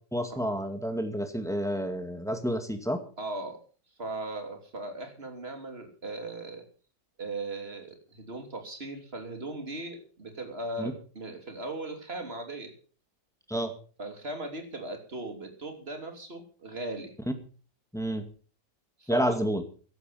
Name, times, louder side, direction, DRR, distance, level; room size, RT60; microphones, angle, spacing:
voice 1, 0.1-3.0 10.8-10.9 13.5-13.7 17.9-18.3 19.1-19.6, equal, ahead, 6 dB, 2.0 m, -29 dB
voice 2, 3.2-3.6 4.0-6.6 7.2-12.7 14.0-17.1 19.0-19.4, right 2 dB, 35° right, 5 dB, 3.3 m, -38 dB
15.0 x 12.0 x 5.8 m, 0.39 s
omnidirectional pair, 1.9 m